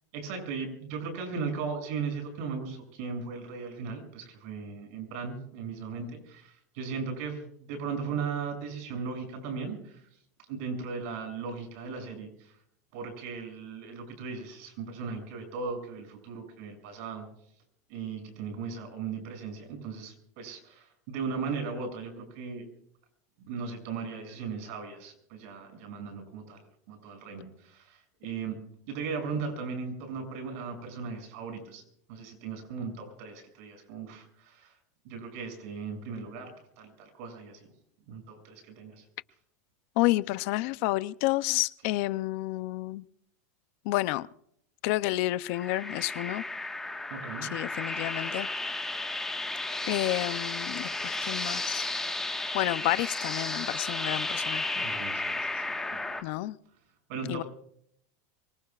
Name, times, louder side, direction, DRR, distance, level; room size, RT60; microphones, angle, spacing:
voice 1, 0.1-10.1 10.5-12.6 12.9-17.3 17.9-22.7 23.4-28.6 28.9-31.8 32.1-34.8 35.0-37.7 38.1-39.0 47.1-47.5 49.1-49.2 54.8-56.3 57.1-57.5, right 5 dB, 60° right, 7.0 m, -37 dB
voice 2, 40.0-43.0 43.9-44.3 44.8-46.4 47.5-48.5 49.9-51.8 52.5-54.8 56.2-56.6 57.3-57.4, left 18 dB, 55° left, 0.6 m, -30 dB
sound 1, 45.4-56.2, left 2 dB, 5° left, 1.5 m, -33 dB
24.5 x 24.0 x 2.4 m
supercardioid pair, 155°, 9 cm